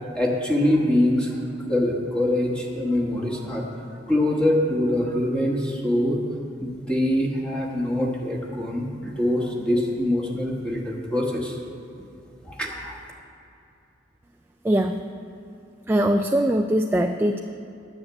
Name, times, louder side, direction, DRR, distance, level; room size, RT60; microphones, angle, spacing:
voice 1, 0.1-1.4 1.7-3.6 4.1-6.2 6.6-11.6 12.4-13.0, left 1 dB, 5° left, -2 dB, 1.2 m, -24 dB
voice 2, 14.6-15.0 15.9-17.4, right 1 dB, 10° right, 4 dB, 0.3 m, -21 dB
9.9 x 6.5 x 8.2 m, 2.6 s
head